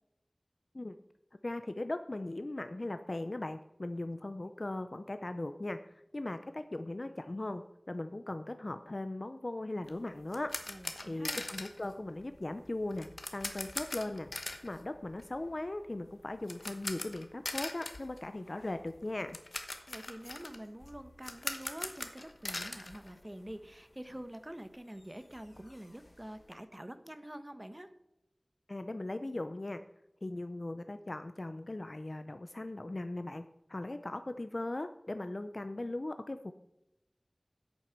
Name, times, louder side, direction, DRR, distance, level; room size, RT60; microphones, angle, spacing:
voice 1, 1.4-10.5 11.1-14.3 14.6-19.4 28.7-29.8 30.2-33.4 33.7-36.5, left 2 dB, 60° left, 9 dB, 0.6 m, -39 dB
sound 1, 9.9-23.8 24.1-24.2 24.6-24.7 25.0-26.5, left 2 dB, 85° left, 1.1 m, -43 dB
voice 2, 10.7-11.5 19.9-27.9, right 1 dB, 25° right, 10 dB, 1.1 m, -46 dB
9.4 x 8.3 x 5.9 m, 0.88 s
wide cardioid pair, 45°, 0 cm